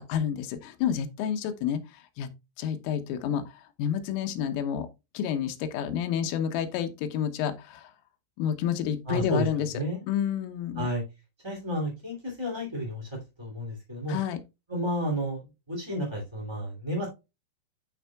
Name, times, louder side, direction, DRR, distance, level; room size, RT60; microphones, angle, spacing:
voice 1, 0.0-2.3 2.6-4.9 5.2-7.9 8.4-10.9 14.1-14.4, left 9 dB, 85° left, 3.6 m, -30 dB
voice 2, 9.1-9.5 9.7-10.0 10.7-11.0 11.4-13.1 13.4-14.2 14.7-15.4 15.7-17.1, equal, 15° right, 0.9 m, -31 dB
12.0 x 4.5 x 2.3 m
omnidirectional pair, 5.7 m